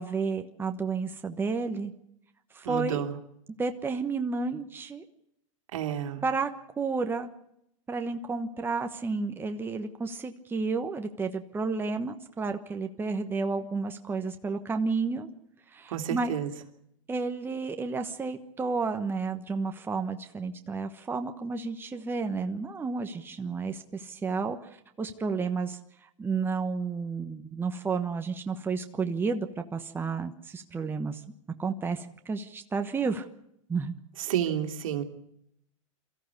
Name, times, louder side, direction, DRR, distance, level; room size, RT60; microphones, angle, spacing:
voice 1, 0.0-1.9 2.5-3.0 3.6-5.0 6.2-6.5 6.8-7.3 7.9-15.3 15.7-16.3 17.1-24.6 25.0-25.8 26.2-31.2 31.6-33.3 33.7-33.9, right 4 dB, 10° right, 6 dB, 1.2 m, -31 dB
voice 2, 2.6-3.1 5.7-6.2 15.9-16.5 34.3-35.0, right 10 dB, 75° right, 5 dB, 2.6 m, -30 dB
23.5 x 14.5 x 8.2 m, 0.77 s
hypercardioid pair, 125°, 17 cm